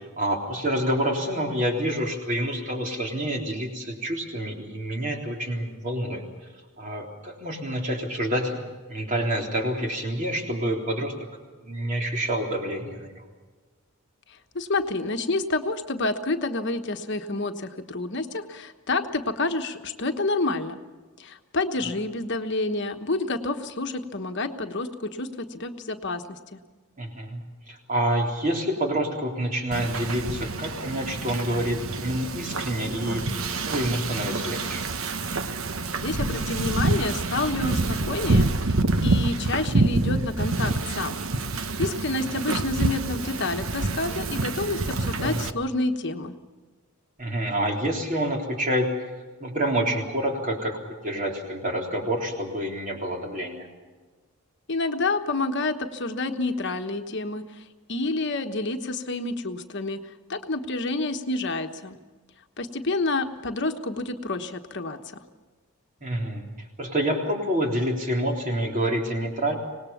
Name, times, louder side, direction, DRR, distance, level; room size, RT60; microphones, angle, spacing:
voice 1, 0.0-6.2 6.8-8.6 8.9-11.1 11.6-13.3 27.0-33.2 33.6-34.8 45.1-45.4 47.2-49.1 49.4-53.7 66.0-66.4 66.8-69.6, right 1 dB, 35° right, 1 dB, 3.7 m, -27 dB
voice 2, 14.3-20.8 21.2-26.6 36.0-38.7 39.0-41.1 41.5-46.3 54.7-57.6 57.9-60.0 60.3-62.0 62.6-65.2, left 2 dB, 55° left, 6 dB, 1.2 m, -29 dB
Wind / Ocean, 29.7-45.5, right 2 dB, 70° right, 1.1 m, -27 dB
25.0 x 19.0 x 7.2 m, 1.3 s
head